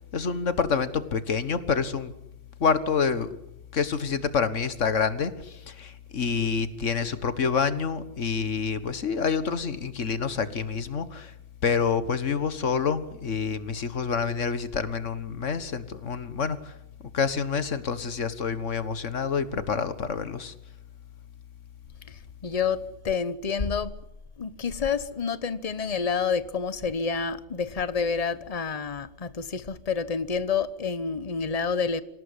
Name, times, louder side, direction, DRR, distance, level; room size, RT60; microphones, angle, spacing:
voice 1, 0.0-2.1 2.6-3.3 3.7-11.3 11.6-16.7 17.1-20.5, left 5 dB, 80° left, 1.9 m, -27 dB
voice 2, 22.4-23.9 24.4-32.0, left 5 dB, 35° left, 1.1 m, -28 dB
26.5 x 17.5 x 9.9 m
omnidirectional pair, 1.3 m